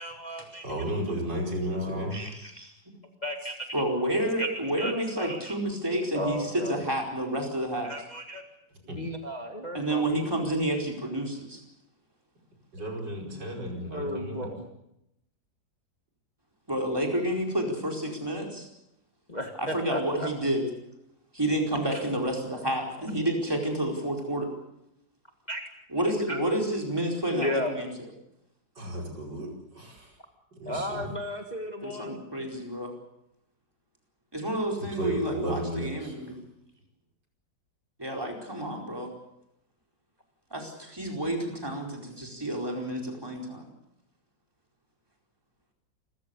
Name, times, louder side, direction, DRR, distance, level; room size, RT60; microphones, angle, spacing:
voice 1, 0.0-0.6 1.7-2.1 3.2-3.7 4.4-4.5 4.8-5.5 6.1-6.8 7.8-8.4 9.0-10.1 13.2-14.7 19.3-20.3 21.9-22.0 25.5-25.6 26.3-26.4 27.3-27.7 30.7-32.5, left 1 dB, 25° left, 3 dB, 1.9 m, -35 dB
voice 2, 0.6-2.3 8.9-9.0 12.7-14.5 28.8-30.2 30.5-31.1 34.8-36.2, right 1 dB, 65° right, 1 dB, 5.8 m, -33 dB
voice 3, 2.1-2.7 3.7-7.9 9.7-11.6 16.7-18.7 19.6-20.6 21.3-24.5 25.9-27.9 31.8-32.9 34.3-36.4 38.0-39.1 40.5-43.7, right 1 dB, 10° right, 1 dB, 4.6 m, -30 dB
29.0 x 14.5 x 8.3 m, 0.84 s
omnidirectional pair, 2.0 m